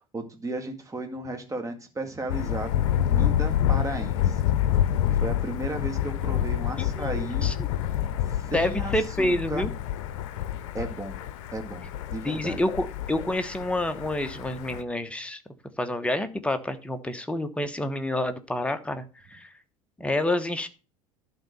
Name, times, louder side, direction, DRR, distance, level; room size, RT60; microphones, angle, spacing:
voice 1, 0.0-4.4 5.1-7.6 8.2-8.9 9.2-9.7 10.7-11.2 11.5-11.8 12.1-12.6, right 2 dB, 20° right, 6 dB, 2.0 m, -34 dB
Thunder, 2.3-14.8, left 11 dB, 60° left, 0.7 m, -28 dB
voice 2, 6.8-7.7 8.5-9.7 12.2-15.4 15.8-19.5 20.0-20.7, left 1 dB, 5° left, 8 dB, 1.0 m, -28 dB
11.5 x 4.0 x 6.7 m, 0.34 s
figure-of-eight pair, 70°, 18 cm